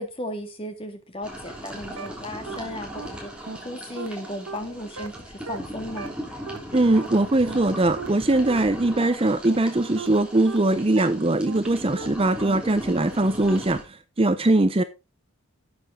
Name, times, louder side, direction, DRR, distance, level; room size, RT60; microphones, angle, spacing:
voice 1, 0.0-3.3 3.6-5.1 5.5-6.1, left 1 dB, 25° left, 2.0 m, -35 dB
sound 1, 1.2-13.8, right 1 dB, 5° right, 3.3 m, -38 dB
sound 2, 1.5-1.6 2.0-2.1 2.5-2.6 3.0-3.1 3.5-3.6 4.0-4.1 4.5-4.6 5.0-5.1 5.5-5.6 6.0-6.1 6.5-6.6 7.0-7.1 7.5-7.6 8.0-8.1 8.5-8.6 9.0-9.1 9.5-9.6 10.0-10.1 10.5-10.6 11.0-11.1 11.5-11.6 12.0-12.1 12.5-12.6 13.0-13.1 13.5-13.6, right 4 dB, 80° right, 1.4 m, -35 dB
voice 2, 6.7-13.8 14.2-14.8, right 2 dB, 25° right, 0.7 m, -21 dB
12.5 x 7.9 x 3.7 m
head